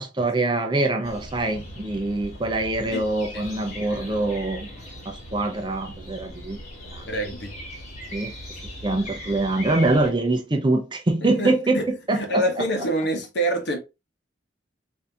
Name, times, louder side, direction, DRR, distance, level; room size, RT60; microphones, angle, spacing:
voice 1, 0.0-4.7 5.1-6.6 6.9-7.0 8.1-8.3 8.8-12.4, right 2 dB, 25° right, 0.5 m, -24 dB
sound 1, 1.0-10.1, equal, 40° left, 1.3 m, -39 dB
voice 2, 7.1-7.5 11.2-13.8, right 1 dB, 70° left, 0.9 m, -26 dB
3.6 x 2.7 x 2.7 m
head